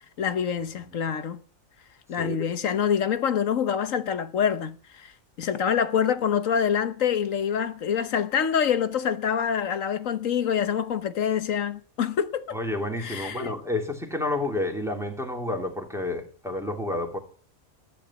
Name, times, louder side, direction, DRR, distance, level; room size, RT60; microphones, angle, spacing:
voice 1, 0.2-1.4 2.1-5.1 5.4-12.6 13.0-13.6, left 8 dB, 65° left, 1.4 m, -26 dB
voice 2, 2.2-2.5 12.5-17.2, left 2 dB, ahead, 2.8 m, -30 dB
14.0 x 10.5 x 7.2 m
omnidirectional pair, 1.5 m